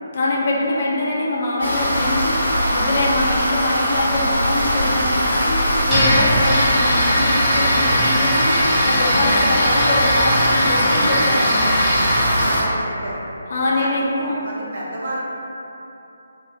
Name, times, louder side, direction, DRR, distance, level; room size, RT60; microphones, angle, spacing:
voice 1, 0.1-11.8 13.5-14.4, left 2 dB, 40° left, -4 dB, 0.4 m, -23 dB
sound 1, 1.6-12.6, equal, 65° left, 0.8 m, -20 dB
sound 2, 5.9-12.5, equal, 5° right, 0.8 m, -21 dB
voice 2, 12.3-13.2 13.6-13.9 14.2-15.2, right 1 dB, 50° right, -5 dB, 0.6 m, -31 dB
2.4 x 2.2 x 3.2 m, 2.9 s
figure-of-eight pair, 145°, 0 cm